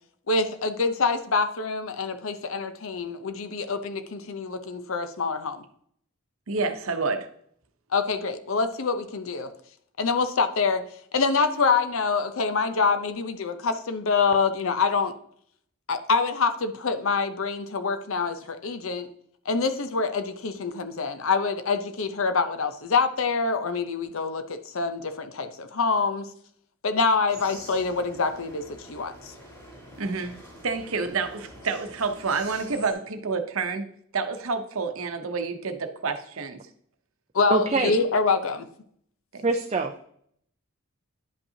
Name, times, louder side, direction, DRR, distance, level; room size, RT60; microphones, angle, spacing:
voice 1, 0.3-5.6 7.9-9.5 10.0-10.8 11.1-15.1 15.9-19.1 19.5-26.3 26.8-29.3 37.3-38.7, left 4 dB, 70° left, 0.7 m, -26 dB
voice 2, 6.5-7.3 30.0-30.4 30.6-36.6 39.3-39.4, right 4 dB, 70° right, 0.8 m, -29 dB
sound 1, 27.3-32.9, equal, 15° left, 2.5 m, -46 dB
voice 3, 37.5-37.9 39.4-40.1, right 3 dB, 30° right, 0.4 m, -24 dB
10.5 x 5.4 x 2.8 m
head